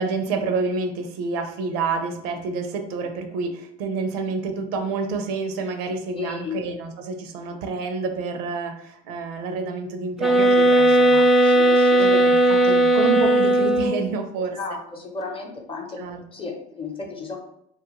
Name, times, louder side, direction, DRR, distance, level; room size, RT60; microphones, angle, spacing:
voice 1, 0.0-11.3 12.0-14.6 16.0-16.2, right 4 dB, 75° right, 6 dB, 0.5 m, -28 dB
voice 2, 6.1-6.6 11.4-12.1 14.4-17.4, left 4 dB, 25° left, 1 dB, 0.7 m, -34 dB
sound 1, 10.2-14.1, right 1 dB, ahead, 0.3 m, -17 dB
2.4 x 2.3 x 2.9 m, 0.75 s
hypercardioid pair, 80°, 20 cm